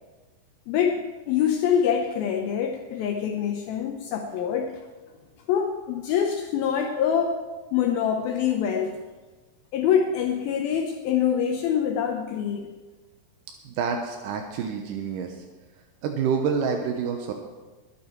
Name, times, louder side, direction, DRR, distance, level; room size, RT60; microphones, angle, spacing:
voice 1, 0.7-1.0 1.3-4.7 5.5-7.4 7.7-9.0 9.7-12.7, left 8 dB, 75° left, 4 dB, 2.4 m, -25 dB
voice 2, 13.6-15.4 16.0-17.3, right 6 dB, 75° right, 3 dB, 2.0 m, -27 dB
20.5 x 8.7 x 4.5 m, 1.3 s
omnidirectional pair, 4.7 m